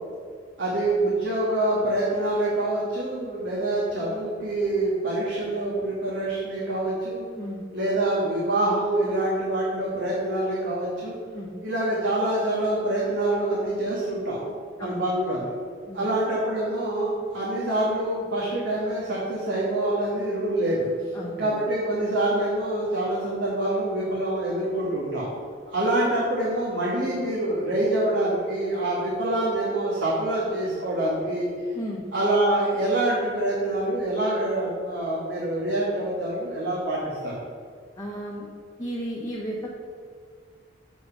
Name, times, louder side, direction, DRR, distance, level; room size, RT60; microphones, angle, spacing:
voice 1, 0.6-7.2 7.7-11.1 11.6-14.4 14.8-15.5 15.9-20.9 21.4-25.3 25.7-31.5 32.1-37.0 37.2-37.3, right 1 dB, 75° right, -6 dB, 1.5 m, -26 dB
voice 2, 21.1-21.6 31.7-32.0 38.0-38.5 38.8-39.7, equal, 20° left, -4 dB, 0.8 m, -34 dB
7.8 x 4.7 x 5.7 m, 2.1 s
head